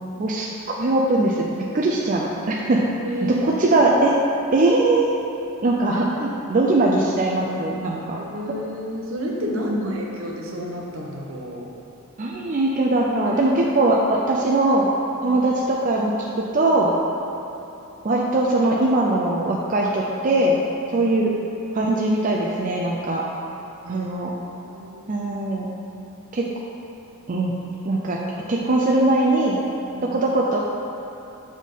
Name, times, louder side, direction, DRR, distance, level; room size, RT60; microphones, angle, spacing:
voice 1, 0.2-1.5 1.7-2.8 3.4-4.1 4.5-5.1 5.6-8.2 9.5-9.9 12.2-14.9 15.2-16.9 18.0-20.6 20.9-21.3 21.7-23.2 23.9-24.3 25.1-25.7 26.3-26.4 27.3-27.5 27.8-28.2 28.5-29.6 30.1-30.6, right 2 dB, 35° right, -3 dB, 0.4 m, -21 dB
voice 2, 3.0-3.9 8.2-11.7 13.2-13.6 15.2-15.4 20.9-21.1 23.8-24.2 24.6-25.1 29.9-30.1, equal, 65° right, -1 dB, 0.9 m, -31 dB
7.3 x 3.7 x 5.4 m, 2.9 s
head